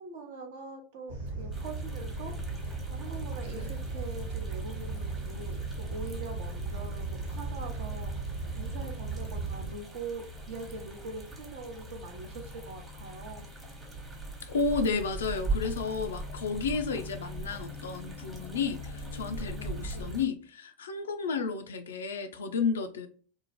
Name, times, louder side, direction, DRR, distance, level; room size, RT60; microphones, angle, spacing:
voice 1, 0.0-2.4 2.9-8.1 8.5-13.5 19.5-20.1, right 3 dB, 65° right, 0.7 m, -43 dB
sound 1, 1.1-9.7, right 3 dB, 80° right, 1.2 m, -36 dB
sound 2, 1.5-20.2, right 1 dB, 15° right, 0.9 m, -41 dB
voice 2, 14.4-23.1, left 5 dB, 80° left, 0.3 m, -32 dB
2.6 x 2.0 x 2.9 m
hypercardioid pair, 90°, 0 cm